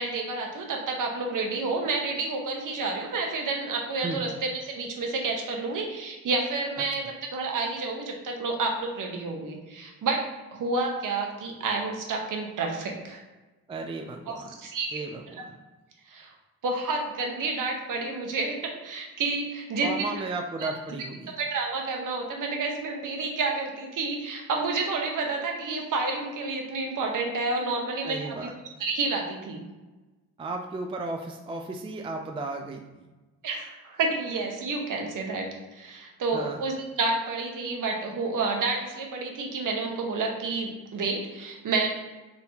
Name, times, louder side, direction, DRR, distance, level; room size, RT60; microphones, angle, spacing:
voice 1, 0.0-7.0 7.3-10.2 10.5-13.2 14.3-15.0 16.1-16.3 16.6-20.1 20.6-20.7 21.4-28.5 28.8-29.6 33.4-35.5 35.7-41.9, right 3 dB, 55° right, 1 dB, 1.0 m, -30 dB
voice 2, 13.7-14.6 14.9-15.5 19.8-21.3 28.0-28.5 30.4-33.1 36.3-36.6, right 3 dB, 15° right, 3 dB, 0.3 m, -34 dB
4.4 x 3.5 x 2.8 m, 1.2 s
cardioid pair, 90°, 37 cm